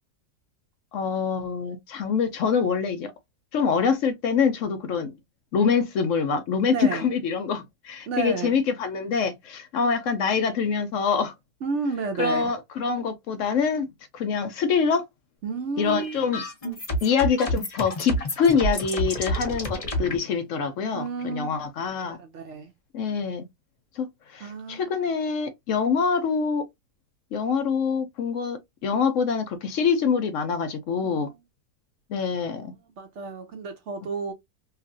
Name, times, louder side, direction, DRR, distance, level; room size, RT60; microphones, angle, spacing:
voice 1, 0.9-3.1 3.5-5.1 5.5-11.3 12.2-15.0 15.8-16.4 17.0-22.2 22.9-23.5 24.0-26.6 27.3-31.3 32.1-32.7, left 6 dB, 65° left, 0.8 m, -25 dB
voice 2, 6.7-7.1 8.1-8.5 11.6-12.5 15.4-16.4 20.9-21.6 22.1-22.7 24.4-24.9 31.0-31.3 33.0-34.3, right 5 dB, 65° right, 0.7 m, -32 dB
sound 1, 15.8-20.2, equal, 30° left, 0.6 m, -29 dB
2.9 x 2.4 x 2.5 m
omnidirectional pair, 1.7 m